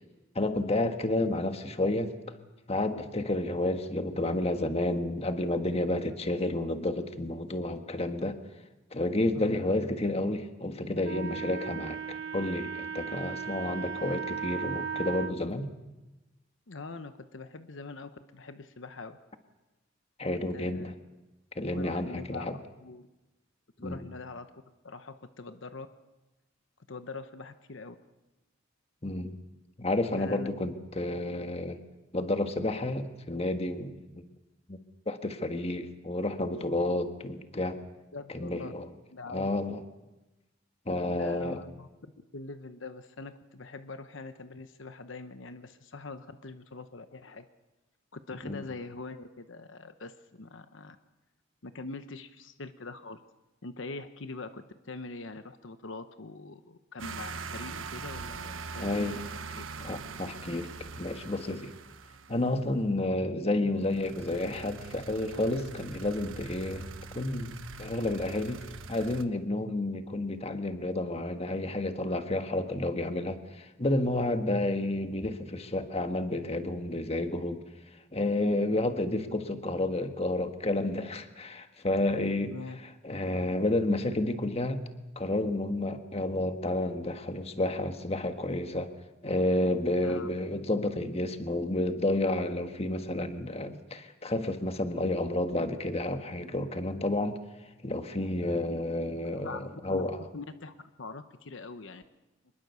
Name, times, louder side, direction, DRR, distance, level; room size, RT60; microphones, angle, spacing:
voice 1, 0.3-2.1 2.7-8.4 8.9-15.7 20.2-20.9 21.6-22.5 23.8-24.0 29.0-29.3 29.8-31.8 32.1-34.2 34.7-34.8 35.1-37.8 38.3-38.9 39.3-39.8 40.9-41.6 48.4-48.6 58.8-59.2 59.8-60.7 61.0-61.7 62.3-66.9 67.1-67.5 67.8-68.6 68.9-77.6 78.1-82.5 83.0-84.8 85.1-88.9 89.2-97.4 97.8-100.2, left 1 dB, 30° left, 7 dB, 1.5 m, -30 dB
Wind instrument woodwind instrument, 11.0-15.4, right 6 dB, 60° right, 0.8 m, -36 dB
voice 2, 16.7-19.2 20.5-20.9 21.8-23.1 23.8-24.5 24.8-25.9 26.9-28.0 30.1-30.5 38.1-38.7 39.1-39.5 41.1-41.9 42.3-47.5 48.1-51.0 51.6-53.2 53.6-59.2 59.5-59.6 82.5-82.8 90.0-90.3 99.3-100.0 100.3-102.0, left 3 dB, 70° left, 10 dB, 1.0 m, -43 dB
sound 1, 57.0-62.9 63.8-69.2, right 4 dB, 85° right, 1.3 m, -43 dB
24.5 x 21.5 x 6.9 m, 1.1 s
head